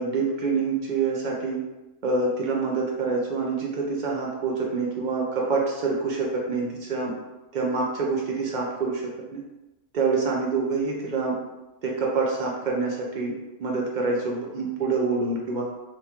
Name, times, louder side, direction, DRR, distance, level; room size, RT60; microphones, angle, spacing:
voice 1, 0.0-1.6 2.0-7.2 7.5-9.0 9.3-9.4 9.9-11.4 11.8-13.3 13.6-15.7, right 4 dB, 75° right, -2 dB, 0.4 m, -26 dB
3.9 x 2.3 x 2.8 m, 1.0 s
omnidirectional pair, 1.4 m